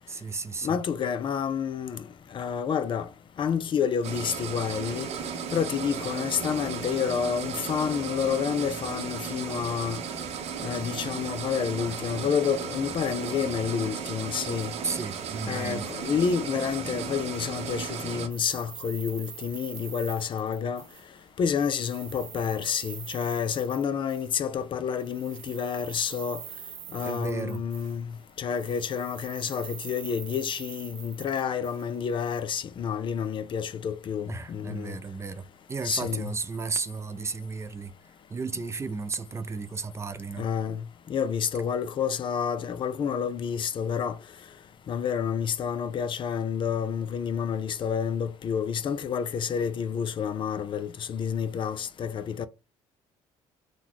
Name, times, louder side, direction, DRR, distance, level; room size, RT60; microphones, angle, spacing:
voice 1, 0.1-0.8 14.8-15.9 27.0-27.6 34.3-40.5, right 4 dB, 20° right, 0.4 m, -34 dB
voice 2, 0.6-3.1 3.4-5.1 5.5-10.0 10.6-14.7 15.4-20.8 21.4-26.4 26.9-28.1 28.4-35.0 35.8-36.3 40.4-44.2 44.9-52.5, left 7 dB, 40° left, 0.4 m, -29 dB
sound 1, 4.0-18.3, right 6 dB, 60° right, 0.7 m, -35 dB
sound 2, 18.3-21.3 21.5-24.3 24.9-28.2 28.5-32.4, right 10 dB, 90° right, 0.8 m, -44 dB
3.9 x 2.2 x 3.0 m
cardioid pair, 100°, 12 cm